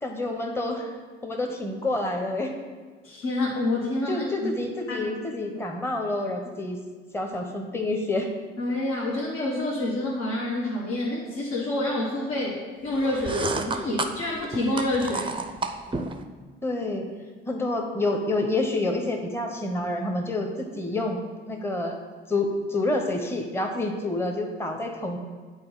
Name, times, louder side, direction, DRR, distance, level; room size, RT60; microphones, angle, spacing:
voice 1, 0.0-1.0 1.2-2.5 4.1-6.8 7.1-8.3 16.6-17.1 17.5-21.2 21.5-22.0 22.3-25.2, left 2 dB, 10° left, 2 dB, 1.0 m, -28 dB
voice 2, 3.0-4.5 4.9-5.0 8.6-15.3, left 1 dB, 60° left, -5 dB, 1.4 m, -28 dB
sound 1, 12.9-16.2, right 3 dB, 15° right, 0.6 m, -31 dB
8.9 x 4.2 x 4.0 m, 1.5 s
hypercardioid pair, 55°, 29 cm